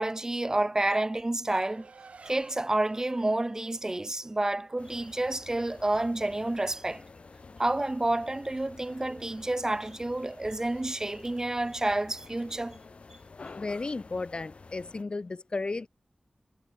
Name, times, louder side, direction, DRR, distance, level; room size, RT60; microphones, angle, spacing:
voice 1, 0.0-1.9 2.2-7.0 7.6-12.8, right 2 dB, 25° right, 1.5 m, -29 dB
Race car auto racing, 1.7-6.6, right 4 dB, 90° right, 2.0 m, -54 dB
sound 1, 4.8-15.0, left 4 dB, 65° left, 1.7 m, -50 dB
voice 2, 13.6-15.9, left 3 dB, 50° left, 0.4 m, -34 dB
wide cardioid pair, 80°, 2 cm